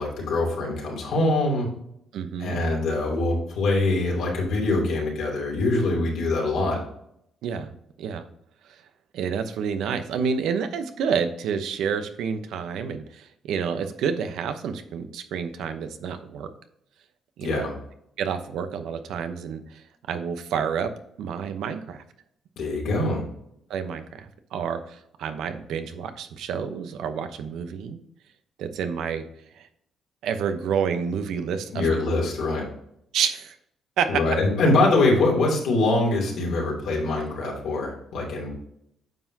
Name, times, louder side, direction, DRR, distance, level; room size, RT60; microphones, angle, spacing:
voice 1, 0.0-1.7 2.4-6.8 17.4-17.7 22.6-23.2 31.7-32.7 34.1-38.5, left 2 dB, 80° left, -1 dB, 2.9 m, -23 dB
voice 2, 2.1-2.6 7.4-7.7 8.0-8.2 8.6-8.8 9.1-16.5 17.4-17.7 18.2-20.9 21.2-22.0 23.7-28.0 28.6-29.2 29.5-29.7 30.2-31.9 33.1-33.6 34.0-34.2, right 7 dB, 80° right, 8 dB, 0.8 m, -29 dB
9.2 x 5.9 x 2.8 m, 0.73 s
cardioid pair, 90°, 0 cm